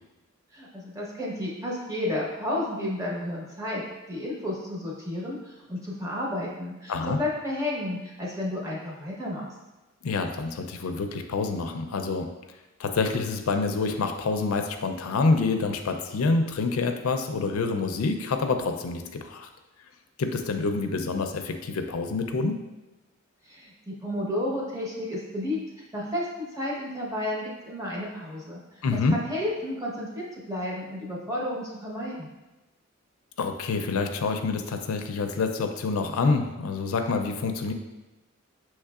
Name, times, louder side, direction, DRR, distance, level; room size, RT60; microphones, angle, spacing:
voice 1, 0.5-3.8 4.1-9.5 23.4-25.6 25.9-28.8 29.1-32.3, left 1 dB, 15° right, -4 dB, 0.9 m, -32 dB
voice 2, 6.9-7.2 10.0-12.3 12.8-19.5 20.2-22.6 28.8-29.2 33.4-37.7, left 4 dB, 90° left, 6 dB, 0.4 m, -27 dB
6.4 x 3.1 x 2.3 m, 1.1 s
head